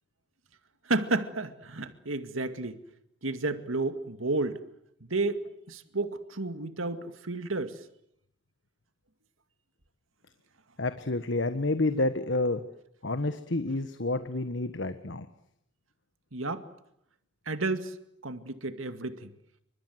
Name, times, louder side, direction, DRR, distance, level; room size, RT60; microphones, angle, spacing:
voice 1, 0.8-2.8 3.2-4.6 5.0-7.9 16.3-16.6 17.5-18.0 18.2-19.3, right 2 dB, 90° right, 2.2 m, -31 dB
voice 2, 10.8-12.6 13.0-15.3, left 2 dB, 65° left, 1.3 m, -29 dB
29.0 x 25.0 x 8.0 m
head